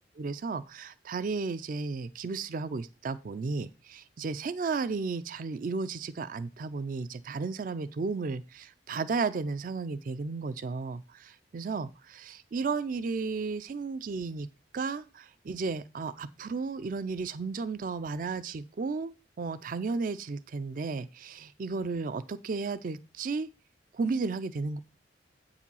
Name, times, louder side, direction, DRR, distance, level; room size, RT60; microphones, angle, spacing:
voice 1, 0.2-14.5 14.7-23.5 23.9-24.8, right 4 dB, 45° right, 14 dB, 0.4 m, -34 dB
8.3 x 4.9 x 5.4 m, 0.32 s
head